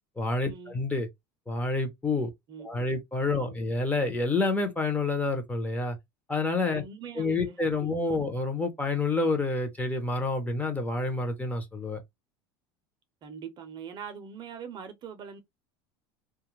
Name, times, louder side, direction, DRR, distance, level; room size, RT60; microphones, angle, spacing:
voice 1, 0.2-1.1 1.5-2.3 2.6-6.0 6.3-6.8 7.2-12.0, left 3 dB, 10° left, 0.7 m, -28 dB
voice 2, 2.5-3.0 3.3-3.7 6.7-8.2 13.2-15.4, right 7 dB, 35° right, 0.6 m, -43 dB
2.3 x 2.2 x 3.0 m
supercardioid pair, 125°, 13 cm